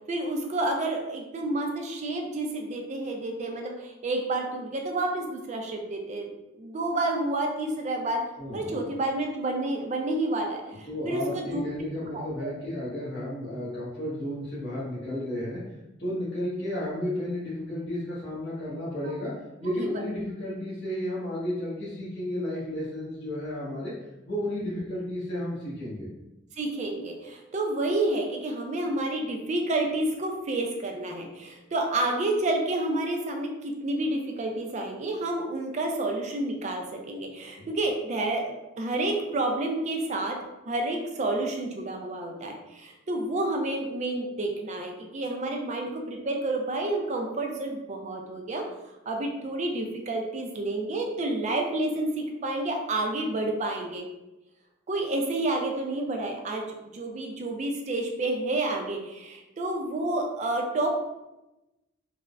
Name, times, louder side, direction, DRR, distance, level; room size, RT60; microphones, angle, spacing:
voice 1, 0.1-6.3 6.6-8.2 8.5-11.9 12.1-12.5 19.7-20.0 26.6-40.4 40.7-48.6 49.1-54.1 54.9-56.6 56.9-60.9, right 2 dB, 35° right, 2 dB, 0.4 m, -29 dB
voice 2, 8.4-8.8 10.9-15.6 16.0-19.3 19.6-23.9 24.3-26.1 37.6-37.7, left 1 dB, 60° left, -10 dB, 1.0 m, -33 dB
3.3 x 2.0 x 2.3 m, 0.98 s
head